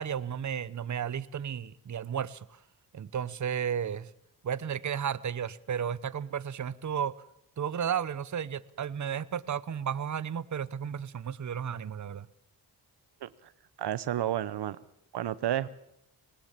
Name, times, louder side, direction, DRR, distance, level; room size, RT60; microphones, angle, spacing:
voice 1, 0.0-2.4 2.9-4.1 4.4-7.1 7.6-12.3, right 8 dB, 45° right, 17 dB, 0.9 m, -33 dB
voice 2, 13.2-13.5 13.8-14.8 15.1-15.7, right 12 dB, 80° right, 16 dB, 0.9 m, -31 dB
20.0 x 19.0 x 7.3 m, 0.77 s
cardioid pair, 80°, 39 cm